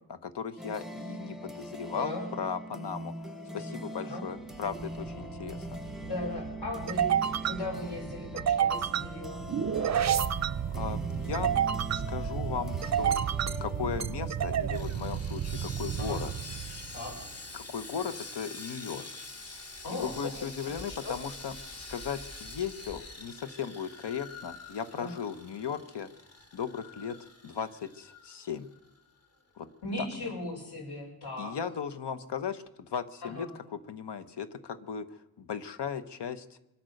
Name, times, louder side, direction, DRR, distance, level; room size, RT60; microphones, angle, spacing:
voice 1, 0.1-5.8 10.7-11.6 11.9-13.2 13.6-16.3 17.5-19.1 19.9-26.1 26.5-28.7 29.6-29.7 30.0-30.3 31.4-33.5 33.7-36.6, left 7 dB, 90° left, 12 dB, 1.1 m, -37 dB
sound 1, 0.6-17.2, equal, ahead, 0.9 m, -42 dB
voice 2, 1.9-2.3 4.0-4.3 6.0-7.1 7.4-9.4 16.0-16.2 16.9-17.2 19.8-20.5 20.9-21.2 24.9-25.1 29.8-31.6 33.2-33.5, left 2 dB, 75° left, -2 dB, 5.8 m, -38 dB
sound 2, 4.6-17.3, right 9 dB, 45° right, 0.5 m, -31 dB
Sawing, 14.7-29.0 29.2-29.4 29.9-30.0, left 2 dB, 40° left, 1.8 m, -46 dB
25.0 x 8.9 x 6.5 m, 0.93 s
wide cardioid pair, 155°, 40 cm